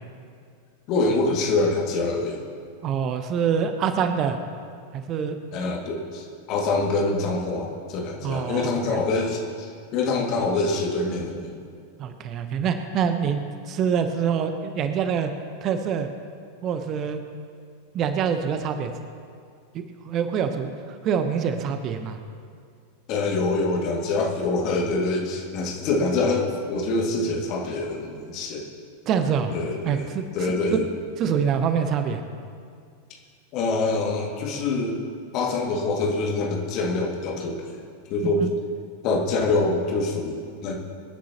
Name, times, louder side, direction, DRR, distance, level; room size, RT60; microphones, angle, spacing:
voice 1, 0.9-2.4 5.5-11.5 23.1-28.7 29.5-30.1 30.3-30.8 33.5-35.0 35.3-37.8 38.1-38.4 39.0-40.8, left 3 dB, 40° left, 0 dB, 2.2 m, -25 dB
voice 2, 2.8-4.4 4.9-5.4 8.2-9.0 12.0-15.3 15.6-16.1 16.6-17.2 17.9-18.9 20.0-20.7 21.0-22.2 29.1-29.5 29.8-30.2 31.2-32.2 38.2-38.5, right 7 dB, 35° right, 8 dB, 0.9 m, -25 dB
25.5 x 10.0 x 3.0 m, 2.2 s
figure-of-eight pair, 90°, 0 cm